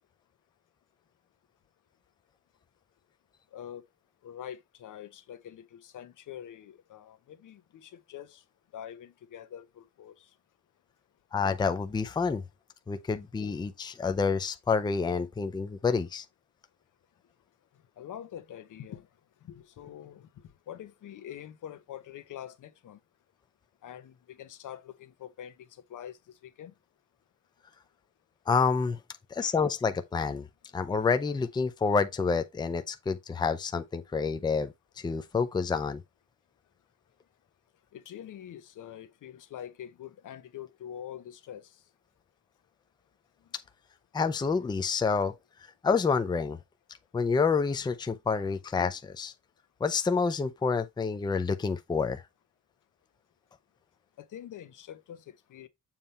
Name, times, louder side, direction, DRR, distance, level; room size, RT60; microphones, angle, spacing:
voice 1, 3.5-3.8 4.2-8.4 8.7-10.3 18.0-19.1 19.4-23.0 23.8-26.7 29.4-29.6 37.9-41.8 54.2-55.7, left 10 dB, 80° left, 1.0 m, -45 dB
voice 2, 11.3-12.4 12.9-16.2 28.5-29.0 29.3-30.5 30.7-36.0 44.1-45.3 45.8-46.6 47.1-49.3 49.8-52.2, left 5 dB, 15° left, 0.5 m, -28 dB
7.3 x 3.4 x 4.2 m
wide cardioid pair, 175°, 31 cm